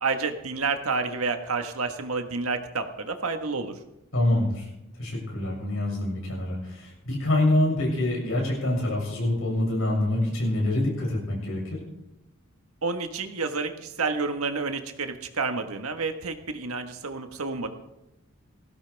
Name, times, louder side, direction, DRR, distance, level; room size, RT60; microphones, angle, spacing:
voice 1, 0.0-3.8 12.8-17.7, right 4 dB, 90° right, 6 dB, 1.5 m, -29 dB
voice 2, 4.1-4.7 5.0-11.8, left 1 dB, 70° left, -3 dB, 7.2 m, -26 dB
19.5 x 15.5 x 3.5 m, 0.88 s
head